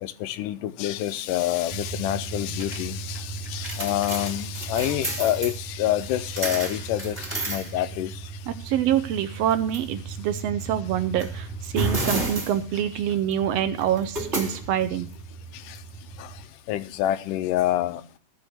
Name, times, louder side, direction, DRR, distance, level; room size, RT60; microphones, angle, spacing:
voice 1, 0.0-8.2 15.7-15.8 16.2-16.3 16.7-18.0, left 13 dB, 85° left, 2.3 m, -27 dB
sound 1, 1.7-16.4, right 3 dB, 15° right, 2.6 m, -33 dB
voice 2, 8.5-15.1, right 10 dB, 80° right, 1.4 m, -26 dB
13.0 x 5.4 x 8.0 m
omnidirectional pair, 3.8 m